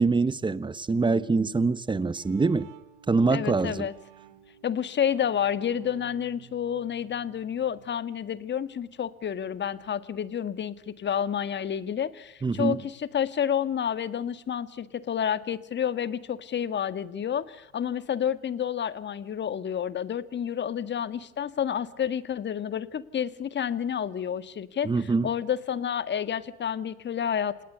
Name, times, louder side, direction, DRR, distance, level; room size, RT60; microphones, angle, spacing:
voice 1, 0.0-2.7 3.1-3.9 12.4-12.8 24.8-25.3, right 4 dB, 10° right, 1.1 m, -24 dB
Bowed string instrument, 2.1-7.9, right 11 dB, 50° right, 3.9 m, -54 dB
voice 2, 3.3-3.9 4.6-27.6, left 8 dB, 25° left, 1.7 m, -30 dB
29.0 x 19.0 x 6.9 m
hypercardioid pair, 95°, 42 cm